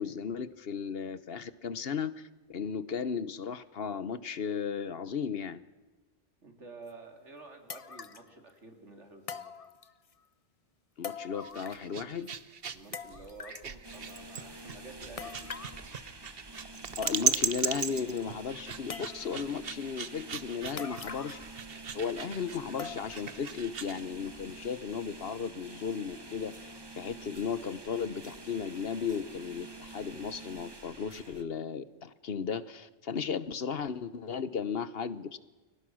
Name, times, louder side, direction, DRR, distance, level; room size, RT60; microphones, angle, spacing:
voice 1, 0.0-5.6 11.0-12.3 17.0-21.4 21.9-26.5 26.9-35.4, left 6 dB, 60° left, 15 dB, 1.1 m, -35 dB
voice 2, 6.4-9.5 12.7-15.5, right 3 dB, 90° right, 4 dB, 3.7 m, -50 dB
sound 1, 6.9-7.0 7.7-8.3 9.3-10.1 11.0-12.0 12.2-12.3 12.9-13.7 15.2-15.8 16.6-16.7 17.0-17.6 17.9-18.0 18.9-19.5 20.8-21.5 21.8-21.9 22.8-23.3 23.8-23.9 24.5-24.6, left 6 dB, 35° left, 0.8 m, -43 dB
sound 2, 11.3-24.0, right 6 dB, 55° right, 1.2 m, -37 dB
sound 3, 13.8-31.4, right 2 dB, 20° right, 1.3 m, -48 dB
30.0 x 22.5 x 6.4 m, 1.2 s
omnidirectional pair, 1.2 m